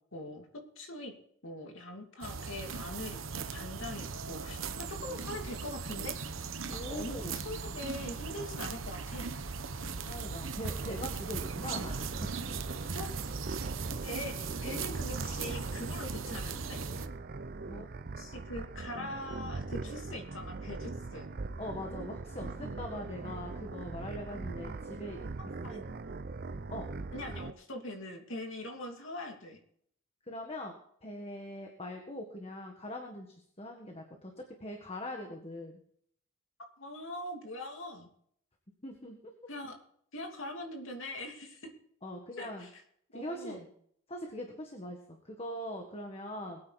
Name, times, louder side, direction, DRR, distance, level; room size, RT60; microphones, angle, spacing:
voice 1, 0.1-0.5 0.8-1.1 1.4-3.2 3.5-6.2 6.9-9.4 12.9-13.1 14.0-16.8 18.2-21.3 25.6-25.8 27.1-29.6 36.8-38.1 39.5-39.8 40.1-41.7 42.4-42.7 43.1-43.7, left 1 dB, 65° left, 3 dB, 2.7 m, -42 dB
sound 1, 2.2-17.1, right 5 dB, 70° right, 1.0 m, -39 dB
voice 2, 6.7-7.3 9.8-12.3 17.7-17.9 20.1-20.2 21.6-25.2 25.7-25.8 26.7-26.9 30.3-30.7 31.0-35.8 38.8-39.3 42.0-42.7 43.1-43.6 44.1-46.6, left 1 dB, 30° left, 3 dB, 1.6 m, -42 dB
sound 2, 10.8-27.5, right 3 dB, 45° right, 0.6 m, -41 dB
22.0 x 9.0 x 4.1 m, 0.66 s
head